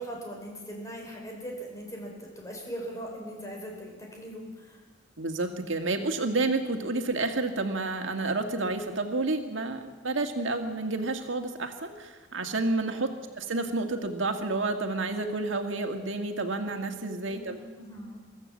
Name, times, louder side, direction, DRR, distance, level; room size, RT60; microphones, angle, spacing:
voice 1, 0.0-4.8 12.8-13.1 17.3-18.2, right 1 dB, 15° left, 0 dB, 4.9 m, -40 dB
voice 2, 5.2-17.6, right 2 dB, 90° right, 5 dB, 1.8 m, -30 dB
24.5 x 14.5 x 7.3 m, 1.4 s
head